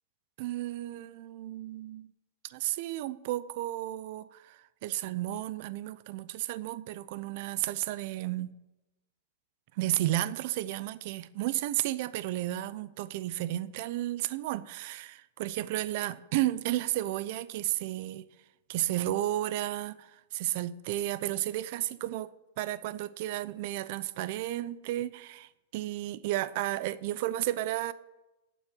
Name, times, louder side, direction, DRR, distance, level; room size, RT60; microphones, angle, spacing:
voice 1, 0.4-2.1 2.4-8.5 9.8-18.3 18.7-22.3 22.6-27.9, right 15 dB, 55° right, 0.6 m, -33 dB
9.3 x 7.2 x 9.1 m
hypercardioid pair, 120°, 0 cm